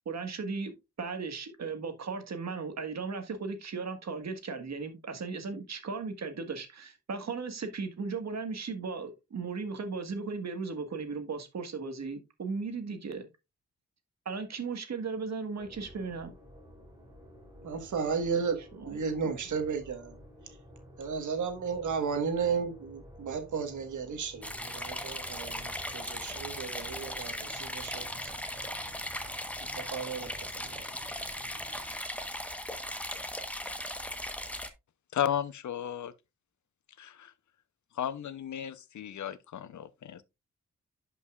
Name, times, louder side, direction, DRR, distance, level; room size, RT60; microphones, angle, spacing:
voice 1, 0.0-13.3 14.2-16.3 18.7-19.0, right 4 dB, 65° right, 1.5 m, -36 dB
sound 1, 15.6-32.0, equal, 15° right, 3.2 m, -53 dB
voice 2, 17.6-20.1 21.0-28.2 28.5-28.6 29.7-30.8, right 5 dB, 90° right, 1.5 m, -34 dB
sound 2, 24.4-34.7, left 1 dB, 5° left, 1.1 m, -38 dB
voice 3, 35.1-36.1 37.0-37.3 38.0-40.2, left 10 dB, 80° left, 0.7 m, -34 dB
11.0 x 5.4 x 2.4 m
cardioid pair, 90°, 29 cm